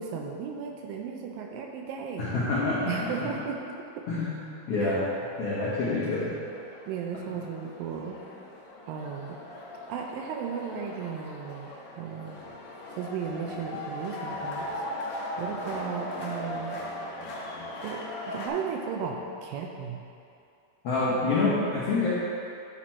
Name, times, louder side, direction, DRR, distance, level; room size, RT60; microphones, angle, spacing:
voice 1, 0.0-2.3 2.9-3.6 4.0-4.1 4.8-4.9 6.9-8.2 8.9-9.4 9.9-11.7 12.0-12.4 13.0-14.7 15.4-16.8 17.6-20.0, right 6 dB, 80° right, 1 dB, 2.2 m, -35 dB
voice 2, 2.2-2.9 3.2-3.3 4.1-4.4 4.7-5.1 5.4-6.3 20.8-22.1, left 3 dB, 85° left, -8 dB, 1.3 m, -27 dB
sound 1, 3.9-4.0 4.7-18.5, left 1 dB, 70° left, 1.8 m, -39 dB
9.3 x 4.5 x 4.3 m, 2.6 s
omnidirectional pair, 4.3 m